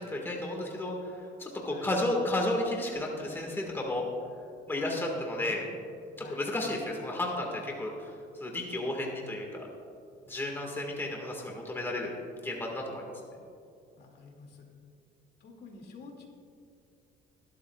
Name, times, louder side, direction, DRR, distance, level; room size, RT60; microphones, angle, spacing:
voice 1, 0.0-4.0 4.7-5.6 6.2-8.1 8.4-9.7 10.3-12.1 12.4-13.1, left 1 dB, 10° left, 0 dB, 1.7 m, -33 dB
voice 2, 4.8-5.7 6.2-6.5 14.0-14.7 15.4-16.3, left 4 dB, 55° left, 1 dB, 2.2 m, -49 dB
19.5 x 12.5 x 2.3 m, 2.5 s
cardioid pair, 145°, 20 cm